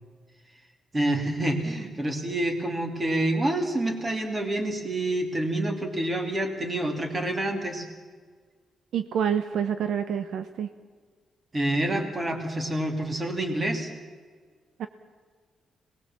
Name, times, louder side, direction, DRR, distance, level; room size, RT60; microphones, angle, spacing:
voice 1, 0.9-7.9 11.5-13.9, right 1 dB, 20° right, 4 dB, 2.7 m, -27 dB
voice 2, 8.9-10.7 14.8-14.9, right 8 dB, 65° right, 9 dB, 1.0 m, -27 dB
26.5 x 19.5 x 7.4 m, 1.6 s
wide cardioid pair, 175°, 0 cm